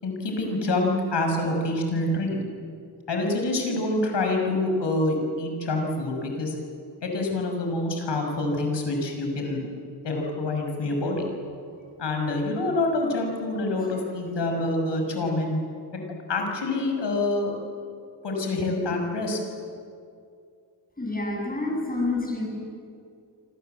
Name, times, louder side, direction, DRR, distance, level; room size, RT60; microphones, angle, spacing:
voice 1, 0.0-2.4 3.1-6.6 7.0-9.7 10.0-11.2 12.0-15.6 16.3-17.5 18.2-19.4, left 2 dB, 75° left, 2 dB, 6.1 m, -26 dB
voice 2, 21.0-22.5, left 2 dB, 20° left, 0 dB, 7.3 m, -28 dB
28.0 x 26.0 x 8.0 m, 2.4 s
wide cardioid pair, 180°, 43 cm